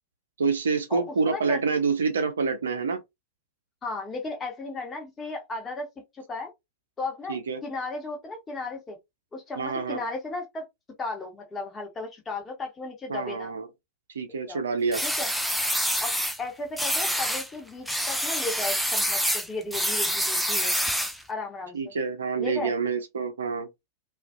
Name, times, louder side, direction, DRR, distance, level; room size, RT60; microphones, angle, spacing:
voice 1, 0.4-3.0 7.3-7.6 9.6-10.0 13.1-13.7 14.1-15.0 21.7-23.7, right 5 dB, 70° right, 0.5 m, -27 dB
voice 2, 0.9-1.6 3.8-5.9 6.1-6.5 7.0-9.0 9.3-10.6 11.0-13.5 14.5-14.6 15.0-15.3 16.0-20.8 21.3-21.9 22.4-22.7, left 3 dB, 20° left, 1.0 m, -35 dB
sound 1, 14.9-16.4 16.8-17.5 17.9-21.2, equal, ahead, 0.4 m, -26 dB
2.4 x 2.4 x 2.3 m
figure-of-eight pair, 90°, 0 cm